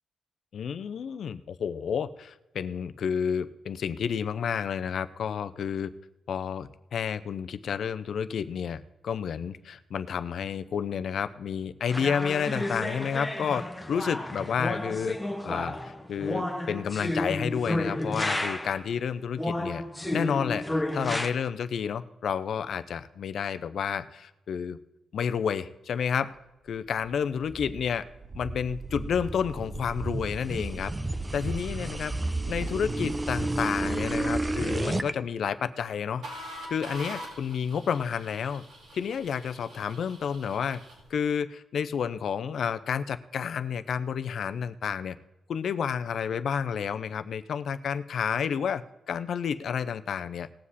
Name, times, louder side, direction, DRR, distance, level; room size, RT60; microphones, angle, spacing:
voice 1, 0.5-5.9 6.3-15.2 15.4-19.8 20.1-24.8 25.1-26.4 26.7-28.0 28.3-30.9 31.3-32.1 32.5-36.2 36.7-38.6 38.9-40.8 41.1-45.1 45.5-50.5, left 7 dB, 65° left, 12 dB, 0.6 m, -30 dB
sound 1, 11.9-18.9 19.4-21.3, left 1 dB, 5° left, 1.3 m, -32 dB
sound 2, 27.1-35.1, right 2 dB, 15° right, 0.7 m, -32 dB
sound 3, 36.2-41.1, equal, 80° right, 4.5 m, -44 dB
19.0 x 7.4 x 4.2 m, 0.96 s
cardioid pair, 115°, 0 cm